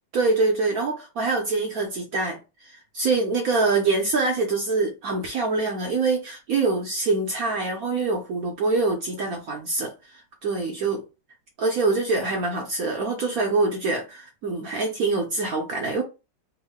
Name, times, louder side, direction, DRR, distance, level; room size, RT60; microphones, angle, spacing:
voice 1, 0.1-11.0 11.6-16.0, right 3 dB, 65° right, 0.9 m, -25 dB
3.6 x 2.0 x 3.5 m
omnidirectional pair, 2.2 m